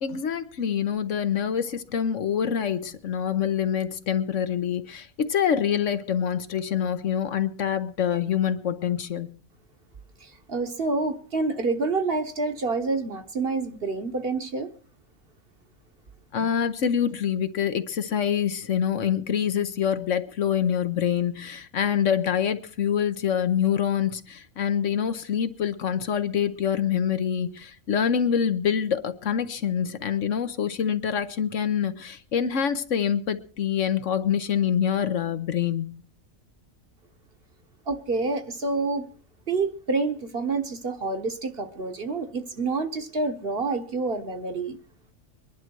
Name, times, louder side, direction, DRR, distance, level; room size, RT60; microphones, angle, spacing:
voice 1, 0.0-9.3 16.3-36.0, left 8 dB, 65° left, 1.2 m, -26 dB
voice 2, 10.2-14.7 37.9-39.0 39.5-44.8, right 3 dB, 45° right, 1.4 m, -28 dB
22.5 x 11.0 x 4.6 m
omnidirectional pair, 1.4 m